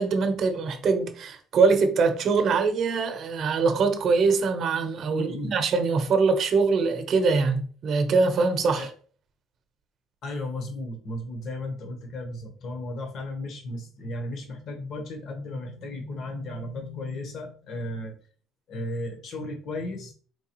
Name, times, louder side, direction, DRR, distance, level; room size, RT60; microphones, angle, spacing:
voice 1, 0.0-8.9, right 4 dB, 40° right, 0.8 m, -23 dB
voice 2, 5.1-5.5 8.7-8.9 10.2-18.2 18.7-20.1, left 1 dB, 50° left, 1.0 m, -35 dB
4.7 x 3.4 x 3.0 m
cardioid pair, 145°, 0 cm